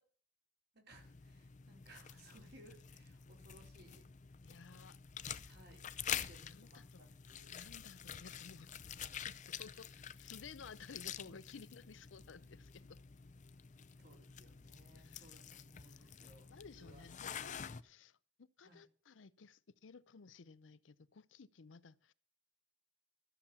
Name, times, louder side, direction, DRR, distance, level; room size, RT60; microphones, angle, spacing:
voice 1, 0.7-4.1 4.6-4.9 5.5-7.6 14.0-16.5 16.7-17.0 18.6-18.8, right 1 dB, 60° right, 4.4 m, -62 dB
sound 1, 0.9-17.8, left 8 dB, 40° left, 0.5 m, -48 dB
voice 2, 4.4-5.0 6.4-8.7 9.2-13.0 14.9-15.4 15.8-16.1 16.5-22.1, left 5 dB, 90° left, 0.6 m, -56 dB
13.0 x 7.2 x 6.9 m
head